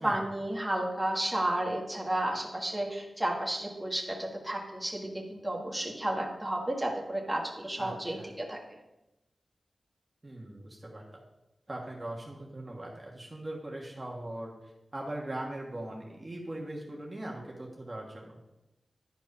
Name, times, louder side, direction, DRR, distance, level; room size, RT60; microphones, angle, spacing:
voice 1, 0.0-8.6, right 1 dB, 10° right, -2 dB, 1.6 m, -32 dB
voice 2, 7.8-8.3 10.2-11.1 11.7-18.4, right 1 dB, 30° right, -2 dB, 1.5 m, -40 dB
10.5 x 4.6 x 5.4 m, 0.94 s
wide cardioid pair, 80°, 0 cm